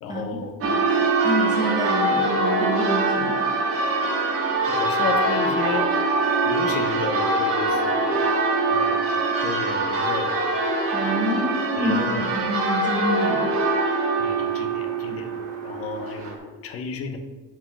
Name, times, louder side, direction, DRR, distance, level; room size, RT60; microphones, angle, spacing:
voice 1, 0.0-0.5 4.6-5.9 6.4-8.3 8.7-9.1 9.4-10.4 11.8-12.2 12.9-13.0 14.2-17.2, left 5 dB, 45° left, 6 dB, 1.0 m, -32 dB
Church bell, 0.6-16.3, right 3 dB, 45° right, 1.7 m, -23 dB
voice 2, 1.2-3.4 10.9-13.6, equal, 15° right, -1 dB, 1.4 m, -28 dB
8.1 x 4.7 x 4.6 m, 1.3 s
cardioid pair, 160°, 32 cm